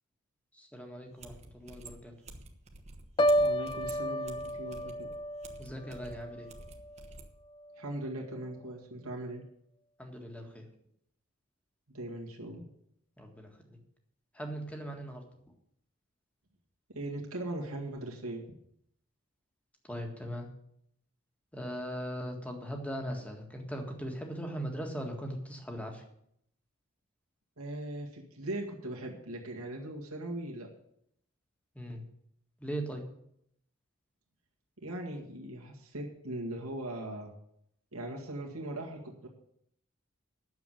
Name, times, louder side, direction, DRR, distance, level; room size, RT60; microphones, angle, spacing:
voice 1, 0.5-2.1 5.6-6.5 10.0-10.7 13.2-13.6 14.3-15.2 19.8-20.5 21.5-26.0 31.8-32.0 32.6-33.0, equal, 5° left, 3 dB, 1.7 m, -39 dB
sound 1, 1.2-7.3, right 2 dB, 30° right, 1.2 m, -50 dB
Piano, 3.2-7.1 7.5-7.9, equal, 20° left, 0.4 m, -31 dB
voice 2, 3.4-5.1 7.8-9.4 11.9-12.7 16.9-18.4 27.6-30.7 34.8-37.3 37.9-39.3, right 1 dB, 85° right, -1 dB, 2.0 m, -39 dB
9.5 x 7.1 x 9.1 m, 0.73 s
head